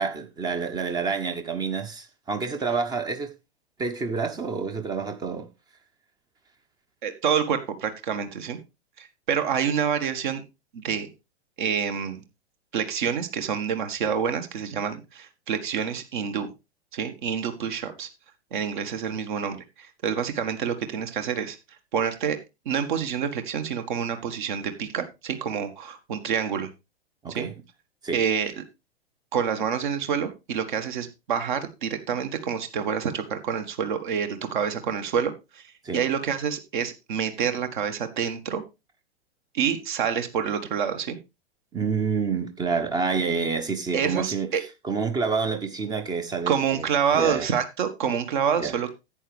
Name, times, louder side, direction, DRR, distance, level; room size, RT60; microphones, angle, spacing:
voice 1, 0.0-3.3 3.8-5.5 27.2-27.5 28.0-28.2 35.8-36.0 41.7-44.5 44.8-46.9 47.1-47.5 48.6-48.7, right 5 dB, 10° right, 0.9 m, -28 dB
voice 2, 7.0-8.6 9.0-10.4 10.7-11.1 11.6-12.2 12.7-16.5 16.9-18.1 18.5-21.6 21.9-22.4 22.6-26.7 27.3-27.5 28.1-28.6 29.3-35.6 35.9-38.6 39.5-41.2 43.9-44.6 46.5-48.9, right 7 dB, 45° right, 1.6 m, -27 dB
11.0 x 8.7 x 3.3 m
figure-of-eight pair, 105°, 33 cm